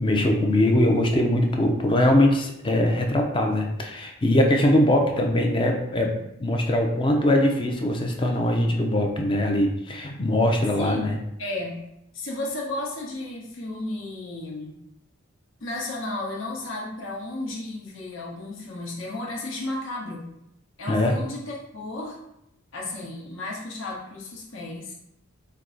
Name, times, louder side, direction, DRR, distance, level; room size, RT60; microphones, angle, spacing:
voice 1, 0.0-6.1 6.4-11.2 20.9-21.2, left 1 dB, 25° left, 2 dB, 0.5 m, -21 dB
voice 2, 10.8-11.1 11.4-11.8 12.1-14.8 15.6-20.3 20.8-22.2 22.7-24.9, left 2 dB, 70° left, -3 dB, 1.0 m, -33 dB
4.6 x 2.2 x 3.8 m, 0.80 s
head